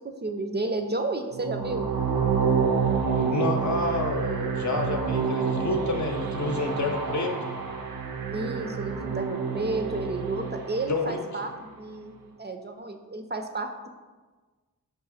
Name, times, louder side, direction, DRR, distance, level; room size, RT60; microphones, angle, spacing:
voice 1, 0.0-1.9 8.3-12.1 12.4-13.7, right 2 dB, 30° right, 5 dB, 0.4 m, -32 dB
sound 1, 1.3-11.5, right 6 dB, 85° right, 0.5 m, -28 dB
voice 2, 3.0-7.5 10.9-11.2, left 3 dB, 55° left, 3 dB, 0.7 m, -29 dB
4.8 x 2.6 x 4.1 m, 1.3 s
cardioid pair, 40°, 34 cm